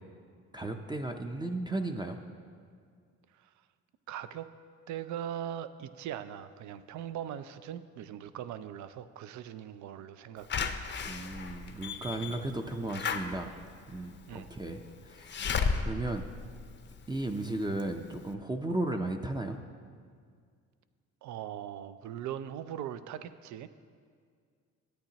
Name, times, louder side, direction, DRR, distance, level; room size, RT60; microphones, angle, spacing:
voice 1, 0.5-2.2 11.0-13.5 13.9-15.5 15.8-16.3 17.1-19.6, right 2 dB, 15° right, 4 dB, 0.5 m, -35 dB
voice 2, 4.1-4.5 4.9-10.7 14.3-14.5 21.2-23.7, right 10 dB, 70° right, 13 dB, 0.5 m, -40 dB
Slam / Alarm, 10.5-17.3 17.8-17.9 18.1-18.2, left 5 dB, 40° left, 0.6 m, -35 dB
13.5 x 8.9 x 2.9 m, 2.1 s
cardioid pair, 90°, 30 cm